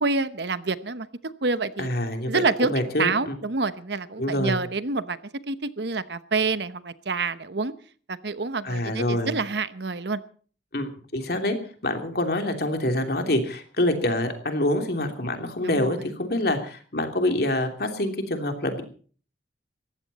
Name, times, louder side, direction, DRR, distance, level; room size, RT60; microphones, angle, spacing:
voice 1, 0.0-1.1 1.4-1.9 2.2-5.2 5.5-7.7 8.1-10.2 15.6-15.9, right 3 dB, 65° right, 14 dB, 1.0 m, -27 dB
voice 2, 1.8-3.3 4.2-4.6 8.6-9.3 10.7-11.6 11.8-18.8, left 1 dB, 55° left, 5 dB, 3.0 m, -26 dB
20.0 x 15.0 x 4.2 m, 0.43 s
head